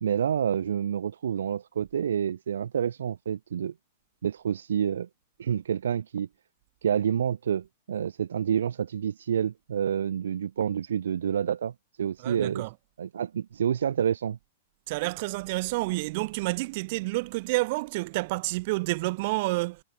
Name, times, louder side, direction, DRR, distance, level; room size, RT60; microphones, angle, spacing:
voice 1, 0.0-3.7 4.2-5.1 5.4-6.3 6.8-11.7 12.0-12.6 13.0-14.4, right 8 dB, 85° right, 2.6 m, -28 dB
voice 2, 12.2-12.8 14.9-19.8, right 23 dB, 55° right, 6.2 m, -29 dB
hypercardioid pair, 125°, 0 cm